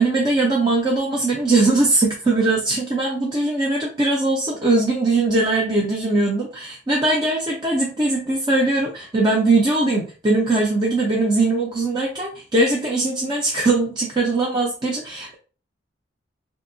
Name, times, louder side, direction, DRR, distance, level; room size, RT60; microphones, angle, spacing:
voice 1, 0.0-15.3, right 2 dB, 25° right, -1 dB, 0.5 m, -20 dB
3.3 x 2.7 x 2.6 m, 0.37 s
head